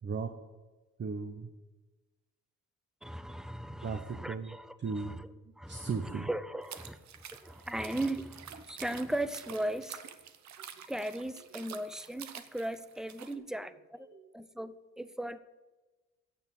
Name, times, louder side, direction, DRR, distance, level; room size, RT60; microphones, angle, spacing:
voice 1, 0.0-0.4 1.0-1.5 3.8-5.2 5.7-6.3 10.6-10.7 11.6-11.8 14.0-14.3, right 5 dB, 35° right, 7 dB, 0.9 m, -37 dB
voice 2, 3.0-5.3 5.6-7.0 7.3-10.0 10.9-14.1 14.3-15.4, right 1 dB, ahead, 14 dB, 0.6 m, -37 dB
sound 1, 6.6-13.3, right 8 dB, 65° right, 1.0 m, -48 dB
8.6 x 7.2 x 8.2 m, 1.2 s
cardioid pair, 90°, 30 cm